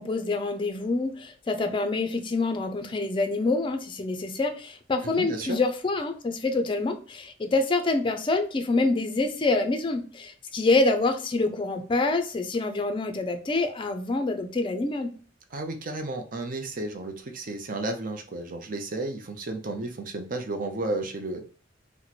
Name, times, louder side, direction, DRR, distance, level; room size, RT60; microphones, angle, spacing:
voice 1, 0.0-15.1, left 3 dB, 25° left, 7 dB, 0.4 m, -26 dB
voice 2, 5.0-5.6 15.5-21.4, right 2 dB, 50° right, 5 dB, 0.6 m, -33 dB
2.9 x 2.1 x 4.0 m, 0.39 s
head